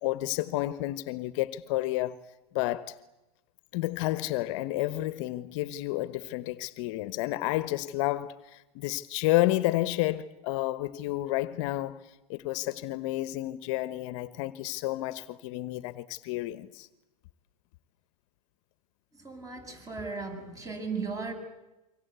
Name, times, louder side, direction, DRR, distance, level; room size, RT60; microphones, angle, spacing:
voice 1, 0.0-2.2 2.5-3.0 3.7-16.9, left 17 dB, 55° left, 1.2 m, -30 dB
voice 2, 19.2-21.3, right 4 dB, 15° right, 7.6 m, -36 dB
27.5 x 25.0 x 8.2 m
hypercardioid pair, 115°, 19 cm